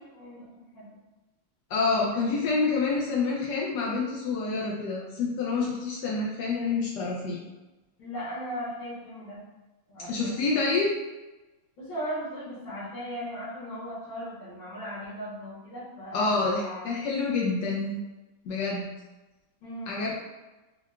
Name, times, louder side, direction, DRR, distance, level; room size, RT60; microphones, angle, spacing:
voice 1, 0.1-0.9 8.0-9.4 9.9-10.4 11.8-16.9 19.6-20.0, equal, 65° left, -12 dB, 1.9 m, -38 dB
voice 2, 1.7-7.4 10.1-10.9 16.1-18.0 18.4-18.9 19.9-20.1, left 4 dB, 85° left, -4 dB, 0.9 m, -27 dB
4.6 x 2.2 x 2.3 m, 1.1 s
omnidirectional pair, 2.3 m